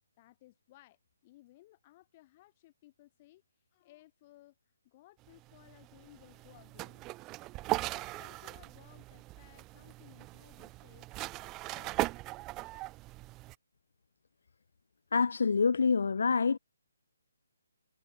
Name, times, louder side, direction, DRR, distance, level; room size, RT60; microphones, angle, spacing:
voice 1, 0.2-7.1 7.7-12.1, left 17 dB, 30° left, 5.3 m, -60 dB
sound 1, 5.3-13.5, right 20 dB, 20° right, 0.3 m, -39 dB
voice 2, 15.1-16.6, left 5 dB, 65° left, 0.7 m, -26 dB
figure-of-eight pair, 150°, 0 cm